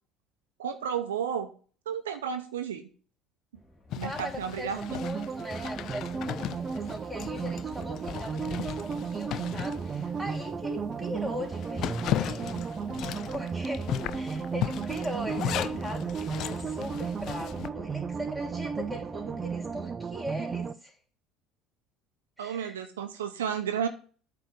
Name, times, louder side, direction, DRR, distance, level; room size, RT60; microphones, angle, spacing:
voice 1, 0.6-1.5 1.9-2.9 4.0-5.0 22.4-23.9, right 8 dB, 80° right, 7 dB, 0.7 m, -32 dB
sound 1, 3.5-19.8, left 1 dB, 25° left, 1.9 m, -51 dB
Zipper (clothing), 3.9-10.5 10.9-11.0 11.4-17.7, left 12 dB, 55° left, 0.3 m, -36 dB
voice 2, 4.0-12.6 13.3-21.0 22.4-22.8, equal, 5° right, 0 dB, 3.1 m, -40 dB
sound 2, 4.8-20.7, right 5 dB, 30° right, 0.6 m, -34 dB
8.6 x 3.5 x 6.4 m, 0.39 s
hypercardioid pair, 65°, 0 cm